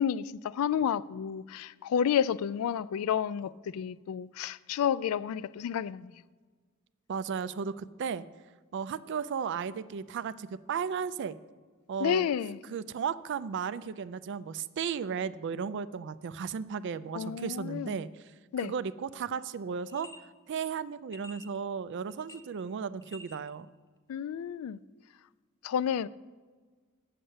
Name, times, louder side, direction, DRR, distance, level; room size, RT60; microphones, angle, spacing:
voice 1, 0.0-6.1 12.0-12.6 17.1-17.9 18.5-18.7 24.1-24.8 25.6-26.1, left 8 dB, 75° left, 0.3 m, -30 dB
voice 2, 7.1-8.2 8.7-11.3 11.9-12.3 12.7-18.2 18.6-20.1 20.5-23.7, right 6 dB, 55° right, 0.4 m, -35 dB
sound 1, 19.8-20.2 21.1-21.6 22.1-22.7 23.0-23.5, left 2 dB, 15° left, 0.6 m, -50 dB
7.7 x 6.5 x 7.9 m
head